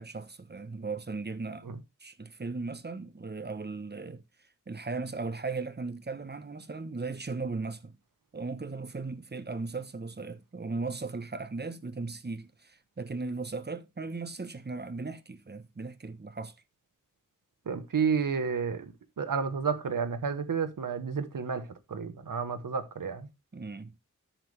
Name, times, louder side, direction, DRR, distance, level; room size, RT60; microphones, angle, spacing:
voice 1, 0.0-1.7 2.0-4.2 4.7-7.9 8.3-16.5 23.5-24.0, right 3 dB, 30° right, 1.1 m, -37 dB
voice 2, 17.7-23.3, right 6 dB, 90° right, 1.3 m, -31 dB
10.5 x 6.9 x 3.3 m
wide cardioid pair, 80°, 32 cm